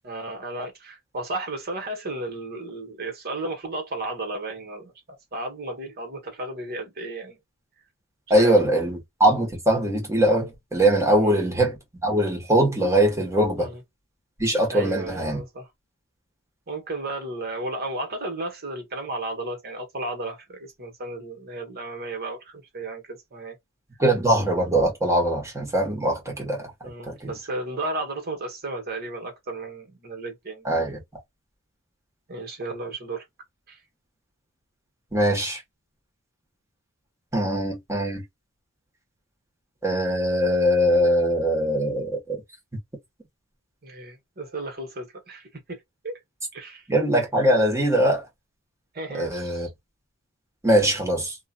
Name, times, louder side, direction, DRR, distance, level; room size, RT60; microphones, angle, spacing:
voice 1, 0.0-7.4 8.3-8.6 11.2-11.5 13.6-13.8 14.7-15.7 16.7-23.6 26.8-30.6 32.3-33.2 33.7-33.8 43.8-46.2 46.5-46.8 48.9-49.7, right 2 dB, 45° right, 1.3 m, -34 dB
voice 2, 8.3-13.7 14.4-15.4 24.0-26.7 27.1-27.3 30.6-31.0 35.1-35.6 37.3-38.2 39.8-42.4 46.9-48.3 49.1-49.7 50.6-51.4, right 1 dB, 15° right, 1.3 m, -22 dB
2.8 x 2.5 x 2.3 m
head